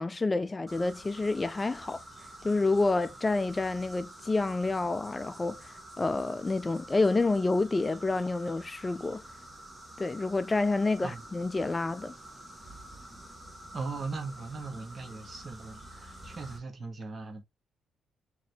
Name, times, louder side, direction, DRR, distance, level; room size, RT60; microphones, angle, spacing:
voice 1, 0.0-2.0 2.4-9.2 10.0-12.2, left 3 dB, 20° left, 0.3 m, -28 dB
sound 1, 0.7-16.6, right 1 dB, 15° right, 1.4 m, -48 dB
voice 2, 13.7-17.4, right 3 dB, 35° right, 1.5 m, -39 dB
4.5 x 3.0 x 3.1 m
cardioid pair, 90°, 0 cm